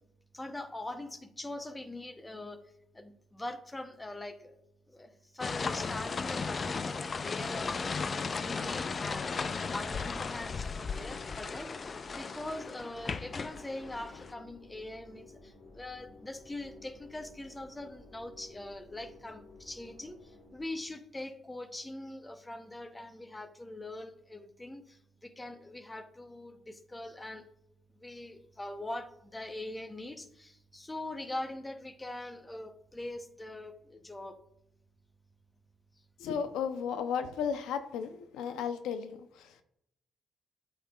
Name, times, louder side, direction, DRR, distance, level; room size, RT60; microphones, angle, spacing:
voice 1, 0.3-2.6 2.9-4.6 4.9-27.5 27.9-34.4, left 1 dB, 15° left, 9 dB, 0.7 m, -42 dB
sound 1, 5.4-14.3, left 4 dB, 40° left, 0.4 m, -36 dB
sound 2, 5.5-21.1, left 3 dB, 55° left, 1.5 m, -54 dB
voice 2, 36.2-39.6, left 7 dB, 90° left, 9 dB, 0.6 m, -34 dB
8.2 x 5.6 x 2.3 m, 0.75 s
cardioid pair, 90°, 0 cm